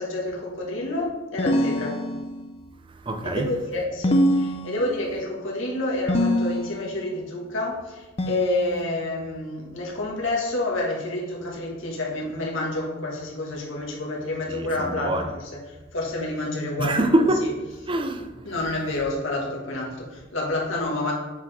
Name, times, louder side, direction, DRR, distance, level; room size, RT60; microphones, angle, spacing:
voice 1, 0.0-2.0 3.2-15.4 15.9-17.1 18.4-21.1, left 2 dB, 85° left, 1.9 m, -28 dB
sound 1, 1.4-2.6 4.0-5.2 6.1-7.0 8.2-9.1, equal, 30° left, 0.5 m, -24 dB
voice 2, 2.9-3.5 14.5-15.3 16.8-17.5 17.9-18.5, right 1 dB, 25° right, 0.5 m, -24 dB
8.0 x 5.0 x 3.6 m
head